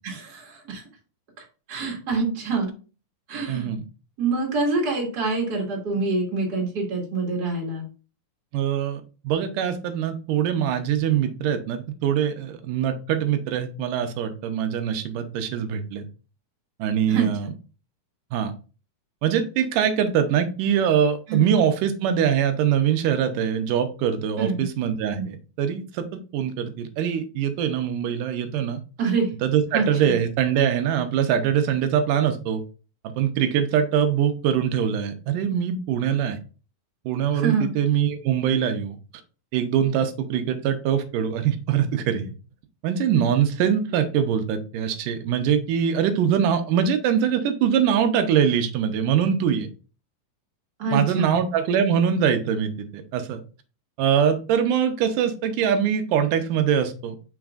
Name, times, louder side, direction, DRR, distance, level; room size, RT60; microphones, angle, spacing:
voice 1, 0.0-0.8 1.7-2.7 3.3-3.7 4.2-7.8 17.1-17.3 21.3-21.5 24.4-24.7 25.2-25.3 29.0-29.3 29.7-30.1 37.3-37.7 50.8-51.3, right 4 dB, 35° right, -1 dB, 2.3 m, -26 dB
voice 2, 3.5-3.8 8.5-16.1 16.8-17.5 18.3-18.5 19.2-26.0 26.3-28.8 29.4-32.6 33.2-36.4 37.1-39.0 39.5-42.3 42.8-49.7 50.9-53.4 54.0-57.2, right 8 dB, 90° right, 7 dB, 2.4 m, -23 dB
6.3 x 6.0 x 2.4 m, 0.35 s
omnidirectional pair, 3.6 m